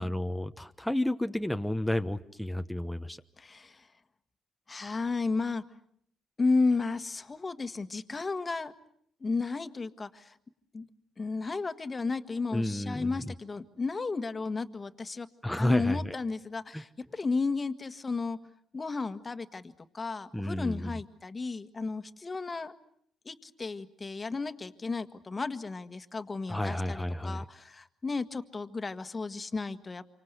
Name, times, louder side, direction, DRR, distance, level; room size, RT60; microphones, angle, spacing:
voice 1, 0.0-3.2 12.5-13.2 15.4-16.1 16.7-16.8 20.3-21.0 26.5-27.4, left 1 dB, 5° left, 7 dB, 1.1 m, -31 dB
voice 2, 3.4-3.9 4.7-5.6 6.4-8.7 9.2-10.4 10.7-10.9 11.2-15.3 15.6-18.4 18.7-22.7 23.2-30.2, left 3 dB, 30° left, 10 dB, 1.6 m, -33 dB
28.0 x 25.5 x 8.2 m, 0.67 s
cardioid pair, 90°, 0 cm